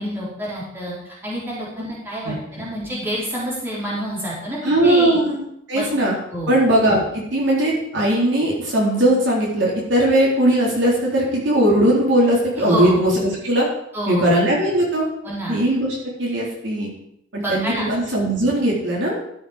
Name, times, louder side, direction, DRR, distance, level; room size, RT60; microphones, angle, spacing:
voice 1, 0.0-5.2 5.7-5.8 6.3-6.6 12.6-12.9 13.9-14.3 15.2-15.6 17.4-17.9, equal, 10° right, -7 dB, 3.9 m, -28 dB
voice 2, 4.6-5.4 5.7-6.1 6.5-13.7 14.1-15.1 15.5-16.9 17.3-19.2, right 1 dB, 65° right, -4 dB, 3.7 m, -19 dB
13.0 x 6.8 x 5.0 m, 0.75 s
head